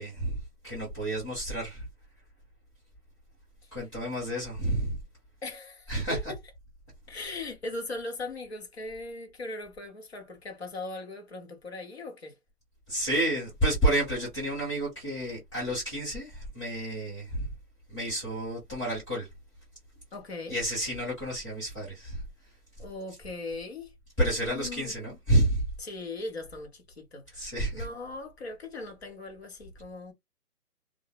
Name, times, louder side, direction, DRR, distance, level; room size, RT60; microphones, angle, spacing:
voice 1, 0.0-1.8 3.7-5.0 5.9-6.2 12.9-17.5 17.9-19.3 20.5-22.2 24.2-25.6 27.3-27.9, right 1 dB, 20° left, 1.4 m, -30 dB
voice 2, 5.4-6.2 7.1-12.4 20.1-20.6 22.8-23.9 24.4-24.9 25.8-30.1, left 2 dB, 40° left, 0.7 m, -39 dB
2.6 x 2.0 x 2.4 m
hypercardioid pair, 175°, 48 cm